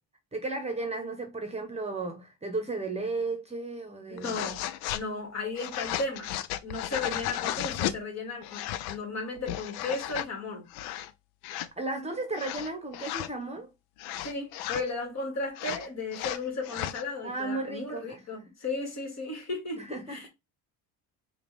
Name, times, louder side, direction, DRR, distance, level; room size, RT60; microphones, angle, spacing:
voice 1, 0.3-4.4 7.0-7.2 11.8-13.7 17.2-18.5 19.8-20.3, right 3 dB, 15° right, 0.9 m, -34 dB
voice 2, 4.1-4.6 4.9-6.3 6.6-10.7 14.2-20.3, left 3 dB, 45° left, 2.0 m, -35 dB
sound 1, 4.2-5.0 5.6-8.0 8.4-9.0 9.4-10.3 10.7-11.1 11.4-11.7 12.3-13.3 14.0-14.9 15.6-17.0, left 12 dB, 90° left, 0.5 m, -34 dB
5.0 x 2.4 x 3.3 m
cardioid pair, 110°, 37 cm